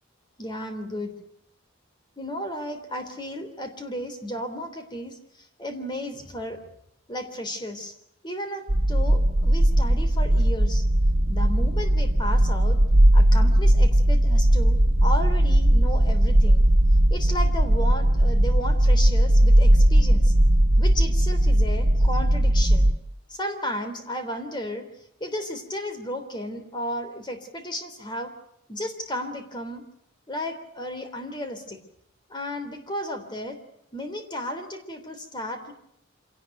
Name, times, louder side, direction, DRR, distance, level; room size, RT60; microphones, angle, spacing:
voice 1, 0.4-1.1 2.2-6.6 7.1-7.9 8.2-10.8 11.3-12.8 13.1-16.7 17.1-20.3 20.8-22.9 23.3-24.9 25.2-28.3 28.7-29.9 30.3-31.8 32.3-33.6 33.9-35.7, equal, 20° left, 8 dB, 3.3 m, -34 dB
sound 1, 8.7-22.9, right 1 dB, 80° right, 1.7 m, -18 dB
26.0 x 18.0 x 9.2 m, 0.75 s
head